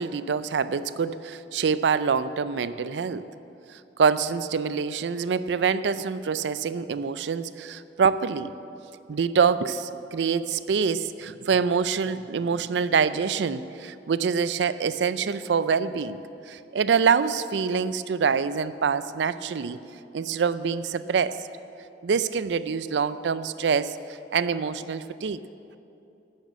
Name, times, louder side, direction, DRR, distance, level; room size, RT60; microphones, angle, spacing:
voice 1, 0.0-3.2 3.7-8.5 9.1-16.2 16.5-19.8 20.1-21.4 22.0-25.4, right 6 dB, 75° right, 15 dB, 0.4 m, -25 dB
12.0 x 6.5 x 8.2 m, 2.8 s
head